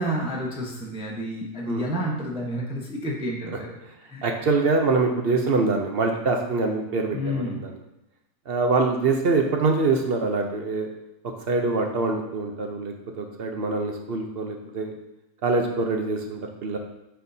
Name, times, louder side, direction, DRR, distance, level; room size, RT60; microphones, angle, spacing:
voice 1, 0.0-3.8 4.1-4.3 7.1-7.6, equal, 5° right, -3 dB, 0.7 m, -30 dB
voice 2, 4.2-7.8 8.5-10.9 11.5-14.9 15.4-16.8, right 3 dB, 55° right, 3 dB, 0.7 m, -24 dB
9.2 x 4.5 x 2.7 m, 0.89 s
omnidirectional pair, 1.6 m